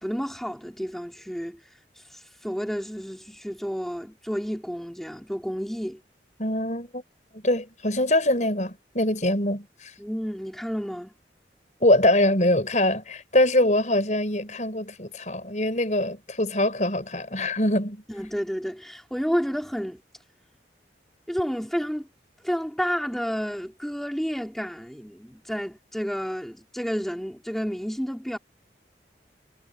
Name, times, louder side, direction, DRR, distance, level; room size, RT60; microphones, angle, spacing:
voice 1, 0.0-6.0 10.0-11.1 18.1-20.0 21.3-22.1 22.4-28.4, equal, ahead, 3.9 m, -31 dB
voice 2, 6.4-7.0 7.3-9.9 11.8-18.0, left 1 dB, 45° left, 6.2 m, -23 dB
head